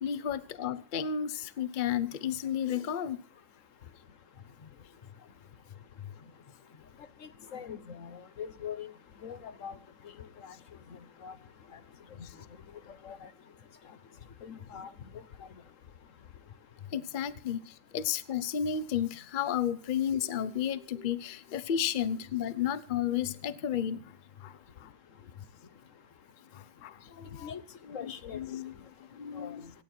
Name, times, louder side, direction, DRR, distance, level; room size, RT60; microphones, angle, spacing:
voice 1, 0.0-3.2 4.6-4.7 6.0-6.1 12.2-12.3 16.9-24.9 26.5-27.5 27.8-28.7 29.1-29.7, left 9 dB, 85° left, 15 dB, 0.4 m, -33 dB
voice 2, 7.5-8.9 9.2-9.8 10.4-10.5 11.2-11.3 13.0-13.2 14.4-14.9 27.4-27.6 27.9-28.4 29.4-29.6, left 8 dB, 50° left, 12 dB, 1.2 m, -41 dB
26.0 x 9.5 x 4.4 m, 0.43 s
omnidirectional pair, 2.0 m